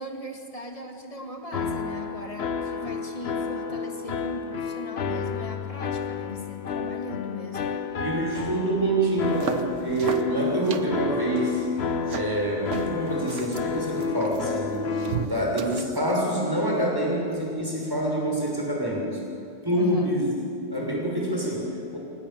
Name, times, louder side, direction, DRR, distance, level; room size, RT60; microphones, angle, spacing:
voice 1, 0.0-7.9 19.7-20.2, left 1 dB, 30° left, 3 dB, 2.3 m, -38 dB
sound 1, 1.5-15.2, left 6 dB, 60° left, 1.2 m, -31 dB
voice 2, 8.0-11.6 12.1-19.2 19.6-20.3 20.7-22.0, right 1 dB, 20° right, -3 dB, 6.6 m, -26 dB
sound 2, 9.1-16.1, right 7 dB, 80° right, 1.4 m, -38 dB
28.0 x 18.5 x 7.4 m, 2.5 s
omnidirectional pair, 1.2 m